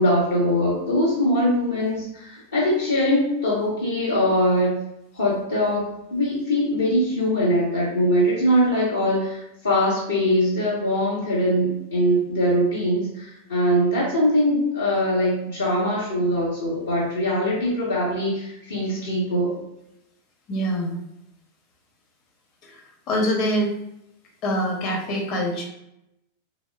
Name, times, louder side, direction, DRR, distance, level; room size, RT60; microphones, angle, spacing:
voice 1, 0.0-4.8 5.1-19.5, equal, 70° left, -9 dB, 0.7 m, -22 dB
voice 2, 20.5-21.0 22.6-22.8 23.1-23.7 24.4-25.7, equal, 35° left, 0 dB, 0.7 m, -24 dB
3.0 x 2.0 x 2.2 m, 0.84 s
figure-of-eight pair, 90°, 0 cm